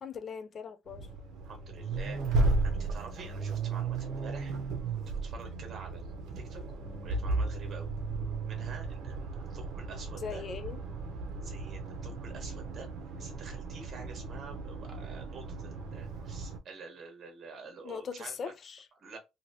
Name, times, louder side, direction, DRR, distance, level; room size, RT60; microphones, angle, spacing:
voice 1, 0.0-1.1 10.2-10.8 17.8-18.9, left 6 dB, 35° left, 0.4 m, -40 dB
Accelerating revving vroom, 0.9-16.6, right 3 dB, 75° right, 0.7 m, -35 dB
voice 2, 1.4-4.5 5.1-6.6 7.0-7.9 8.5-10.4 11.4-12.9 13.2-18.5 19.0-19.2, right 4 dB, 40° right, 1.2 m, -48 dB
3.0 x 2.8 x 2.6 m
cardioid pair, 175°, 0 cm